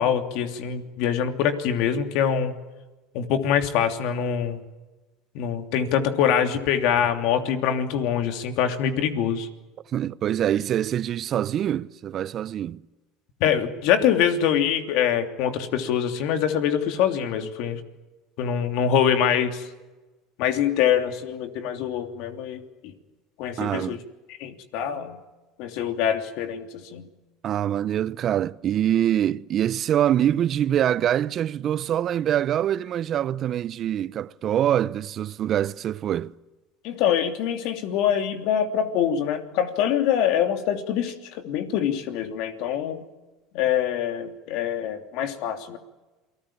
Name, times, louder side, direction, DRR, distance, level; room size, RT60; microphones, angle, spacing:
voice 1, 0.0-2.5 3.1-4.6 5.3-9.5 13.4-17.8 18.4-19.7 20.4-22.9 23.4-24.0 24.4-25.2 25.6-27.1 36.8-43.1 43.5-45.8, left 9 dB, 70° left, 3.0 m, -24 dB
voice 2, 9.9-12.8 23.6-24.0 27.4-36.3, right 11 dB, 45° right, 0.8 m, -24 dB
28.0 x 19.5 x 8.8 m
supercardioid pair, 100°, 0 cm